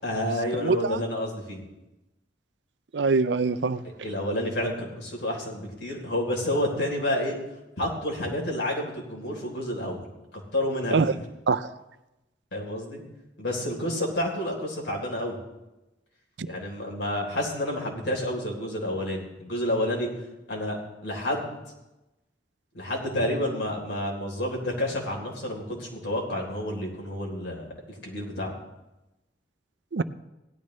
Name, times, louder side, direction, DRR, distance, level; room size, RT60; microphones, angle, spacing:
voice 1, 0.0-1.6 4.0-7.4 7.8-11.2 12.5-13.0 13.4-15.4 16.5-20.1 20.5-21.6 22.7-27.7 28.0-28.5, left 1 dB, 85° left, -1 dB, 3.6 m, -29 dB
voice 2, 0.6-1.0 2.9-4.1 10.9-11.1 11.5-11.7 29.9-30.0, right 4 dB, 75° right, 14 dB, 0.5 m, -24 dB
17.0 x 11.5 x 3.2 m, 0.98 s
head